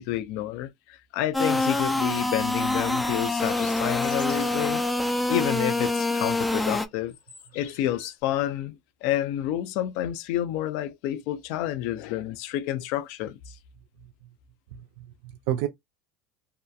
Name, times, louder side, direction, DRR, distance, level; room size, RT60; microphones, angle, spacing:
voice 1, 0.0-4.8 5.3-7.1 7.5-13.6, left 13 dB, 70° left, 0.4 m, -29 dB
sound 1, 1.3-6.9, left 2 dB, 5° left, 0.4 m, -26 dB
sound 2, 2.3-2.4 3.1-4.7 5.1-5.3 5.7-6.5 6.8-8.2, left 6 dB, 85° left, 0.8 m, -47 dB
voice 2, 14.7-15.7, right 12 dB, 75° right, 0.3 m, -31 dB
2.7 x 2.2 x 2.3 m
supercardioid pair, 105°, 0 cm